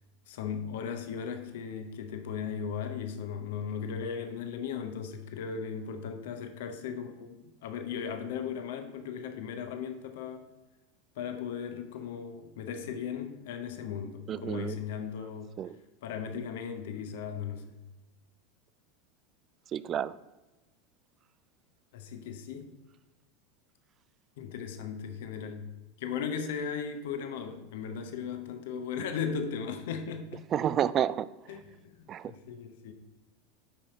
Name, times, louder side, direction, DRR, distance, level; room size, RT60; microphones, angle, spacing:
voice 1, 0.3-10.4 11.2-15.6 16.0-17.7 21.9-22.7 24.4-25.7 26.0-30.4 31.5-31.9 32.2-32.9, left 7 dB, 60° left, 0.8 m, -37 dB
voice 2, 14.3-14.8 15.6-15.8 19.7-20.1 30.5-31.3 32.1-32.3, right 10 dB, 35° right, 0.3 m, -29 dB
8.4 x 5.6 x 4.1 m
figure-of-eight pair, 85°, 0 cm